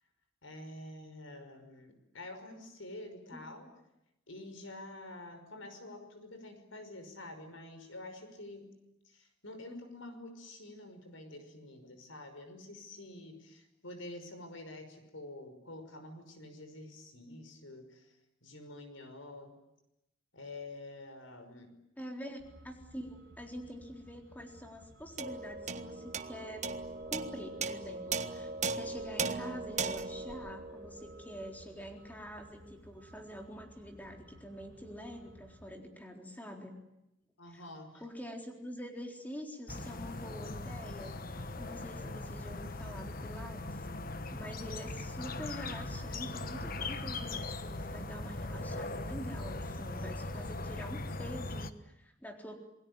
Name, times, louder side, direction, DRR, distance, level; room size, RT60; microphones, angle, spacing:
voice 1, 0.4-3.7 4.3-8.7 9.1-18.1 18.4-19.5 20.3-21.8 37.4-38.0, left 2 dB, 85° left, 8 dB, 5.6 m, -48 dB
voice 2, 22.0-22.4 22.6-26.7 27.1-36.8 37.5-37.6 38.0-43.8 44.3-52.6, equal, 10° left, 3 dB, 4.0 m, -46 dB
Truck, 22.4-35.8, right 1 dB, 60° right, 6.3 m, -57 dB
sound 1, 25.2-31.8, right 4 dB, 40° right, 1.2 m, -38 dB
sound 2, 39.7-51.7, left 2 dB, 50° left, 1.3 m, -40 dB
28.0 x 20.5 x 9.7 m, 0.87 s
head